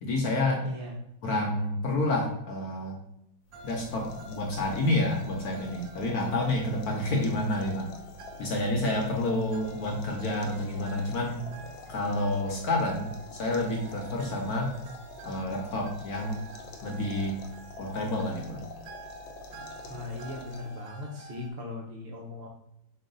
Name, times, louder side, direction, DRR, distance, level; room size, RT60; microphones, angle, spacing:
voice 1, 0.0-0.6 1.2-3.0 3.6-7.9 8.4-11.4 11.9-14.7 15.2-16.4 16.8-17.4 17.8-18.7, left 1 dB, 65° left, 0 dB, 1.1 m, -29 dB
voice 2, 0.6-1.0 19.9-22.5, left 2 dB, 65° right, -1 dB, 0.6 m, -38 dB
sound 1, 3.5-20.9, left 2 dB, 85° left, 1.4 m, -47 dB
sound 2, 3.5-21.5, right 1 dB, 85° right, 1.4 m, -49 dB
5.4 x 2.3 x 3.8 m, 0.80 s
omnidirectional pair, 2.0 m